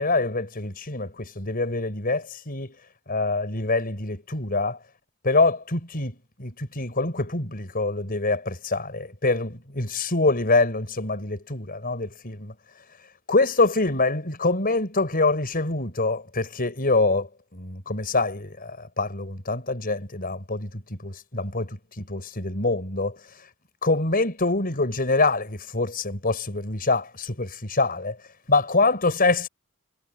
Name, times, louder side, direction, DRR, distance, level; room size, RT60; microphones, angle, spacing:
voice 1, 0.0-2.8 3.1-4.8 5.2-12.5 13.3-23.2 23.8-28.2 28.5-29.5, left 3 dB, 40° left, 5.3 m, -25 dB
head